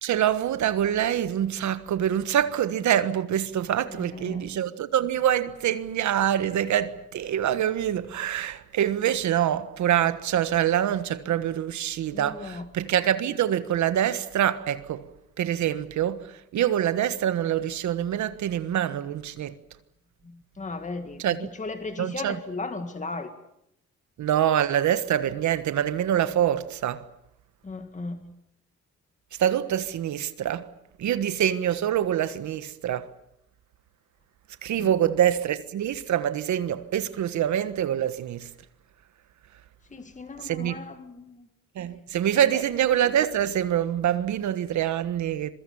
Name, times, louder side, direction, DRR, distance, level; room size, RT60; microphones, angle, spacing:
voice 1, 0.0-15.0 15.4-19.5 21.2-21.5 22.0-22.4 24.2-27.0 29.4-30.7 31.0-33.1 34.6-38.5 40.4-40.8 41.7-45.5, right 10 dB, 70° right, 1.4 m, -25 dB
voice 2, 3.9-4.5 12.1-12.7 20.2-23.3 27.6-28.3 34.8-34.9 39.9-41.5 42.5-42.6, left 3 dB, 25° left, 2.0 m, -36 dB
26.5 x 22.5 x 7.1 m
cardioid pair, 90°, 30 cm